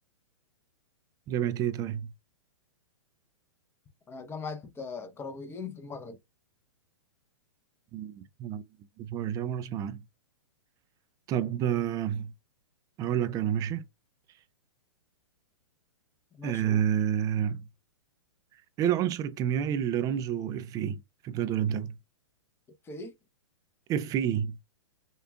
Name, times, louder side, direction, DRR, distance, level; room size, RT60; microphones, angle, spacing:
voice 1, 1.3-2.1 7.9-8.6 9.0-10.0 11.3-12.3 13.0-13.8 16.4-17.6 18.8-22.0 23.9-24.6, right 9 dB, 20° right, 0.4 m, -29 dB
voice 2, 4.1-6.2 16.3-16.8 22.8-23.1, left 4 dB, 15° left, 0.8 m, -40 dB
6.6 x 2.4 x 2.3 m
hypercardioid pair, 120°, 16 cm